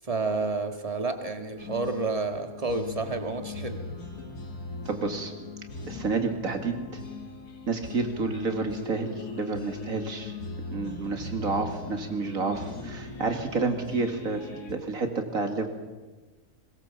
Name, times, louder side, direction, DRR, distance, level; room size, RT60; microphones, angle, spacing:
voice 1, 0.0-3.8, right 3 dB, 25° right, 6 dB, 1.8 m, -30 dB
sound 1, 1.6-14.7, left 3 dB, 85° left, 3.1 m, -39 dB
voice 2, 4.9-5.3 5.9-7.0 7.7-10.3 10.7-15.7, right 4 dB, 65° right, 5 dB, 2.6 m, -30 dB
21.5 x 20.5 x 7.2 m, 1.3 s
omnidirectional pair, 1.6 m